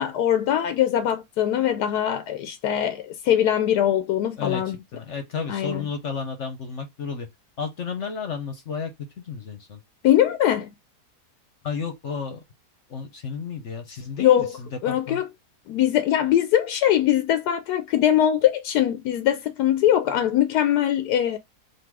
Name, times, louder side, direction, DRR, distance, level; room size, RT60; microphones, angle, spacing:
voice 1, 0.0-4.8 5.5-5.9 10.0-10.7 14.2-14.5 14.8-15.2 15.7-21.4, left 11 dB, 85° left, 1.1 m, -22 dB
voice 2, 4.4-7.3 7.6-8.9 9.2-9.8 11.6-12.4 12.9-15.2, left 5 dB, 55° left, 1.0 m, -32 dB
3.9 x 2.6 x 4.6 m
omnidirectional pair, 1.7 m